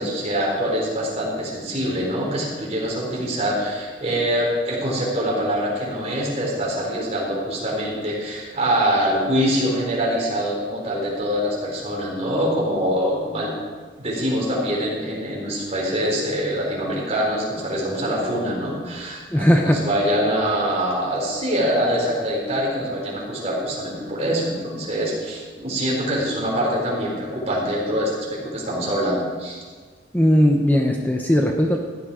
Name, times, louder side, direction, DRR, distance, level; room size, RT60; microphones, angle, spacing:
voice 1, 0.0-13.5 14.0-29.6, equal, 35° right, -4 dB, 4.3 m, -24 dB
voice 2, 19.3-19.8 30.1-31.8, equal, 10° left, 1 dB, 0.8 m, -18 dB
14.5 x 10.5 x 5.0 m, 1.5 s
head